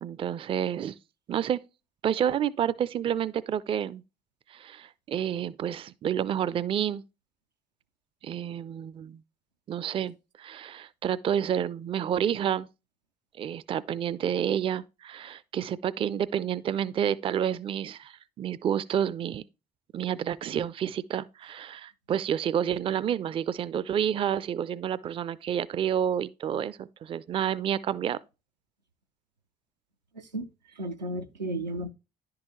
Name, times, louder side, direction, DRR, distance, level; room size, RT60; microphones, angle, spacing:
voice 1, 0.0-0.9 1.3-1.6 2.0-4.0 4.5-7.0 8.2-9.2 9.7-12.7 13.4-19.4 19.9-28.2, right 9 dB, 25° right, 0.4 m, -29 dB
voice 2, 30.1-31.9, right 1 dB, 85° right, 0.5 m, -34 dB
10.5 x 3.8 x 2.9 m
figure-of-eight pair, 50°, 21 cm